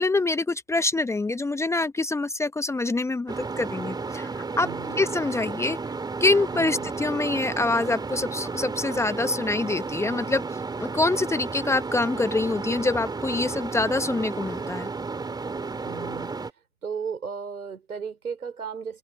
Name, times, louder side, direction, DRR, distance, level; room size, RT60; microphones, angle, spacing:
voice 1, 0.0-4.7 5.0-5.8 6.2-10.4 10.8-14.9, left 2 dB, 5° left, 1.2 m, -25 dB
sound 1, 3.3-16.5, right 4 dB, 10° right, 3.6 m, -33 dB
voice 2, 4.6-5.1 6.5-6.9 15.8-16.3 16.8-19.0, right 6 dB, 80° right, 4.7 m, -35 dB
figure-of-eight pair, 110°, 43 cm